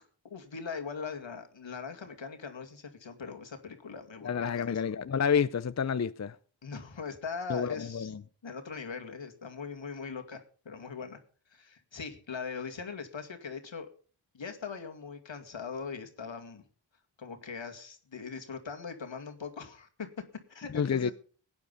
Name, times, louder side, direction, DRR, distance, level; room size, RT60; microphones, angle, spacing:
voice 1, 0.3-4.8 6.6-8.1 8.4-11.2 11.5-13.9 14.3-16.6 17.2-21.1, left 5 dB, 75° left, 2.3 m, -41 dB
voice 2, 4.2-6.4 7.5-8.2 20.7-21.1, left 7 dB, 35° left, 0.6 m, -29 dB
17.0 x 9.6 x 5.5 m
wide cardioid pair, 65°, 46 cm